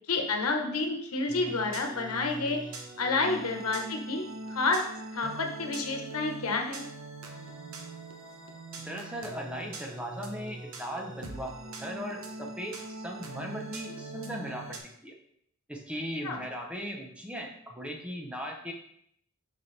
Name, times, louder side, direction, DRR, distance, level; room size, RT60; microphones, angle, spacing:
voice 1, 0.1-2.6 3.0-4.2 4.5-4.8 5.1-6.8 16.2-16.4, left 3 dB, 85° left, 3 dB, 1.1 m, -29 dB
sound 1, 1.3-14.8, right 2 dB, 75° right, 1.0 m, -42 dB
voice 2, 8.8-11.5 11.8-15.1 15.7-18.7, equal, 5° right, 1 dB, 0.7 m, -38 dB
6.6 x 5.9 x 3.3 m, 0.71 s
head